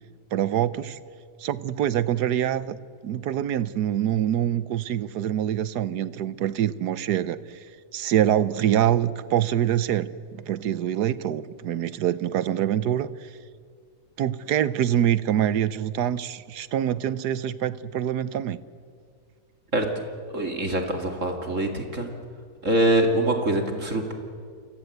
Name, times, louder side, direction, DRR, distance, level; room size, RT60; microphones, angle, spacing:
voice 1, 0.3-1.0 1.4-2.8 3.0-7.6 7.9-13.3 14.2-18.6, right 10 dB, 90° right, 16 dB, 1.4 m, -25 dB
voice 2, 20.3-22.1 22.6-24.1, right 1 dB, 50° right, 4 dB, 2.7 m, -24 dB
30.0 x 24.5 x 8.0 m, 2.2 s
omnidirectional pair, 1.7 m